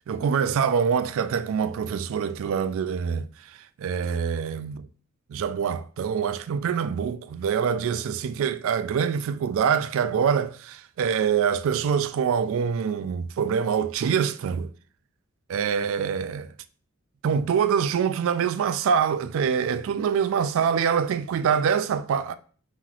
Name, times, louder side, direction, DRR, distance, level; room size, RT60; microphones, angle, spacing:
voice 1, 0.1-3.3 3.8-4.9 5.3-14.7 15.5-16.5 17.2-22.3, right 7 dB, 65° right, 0.3 m, -25 dB
5.6 x 3.0 x 2.4 m
head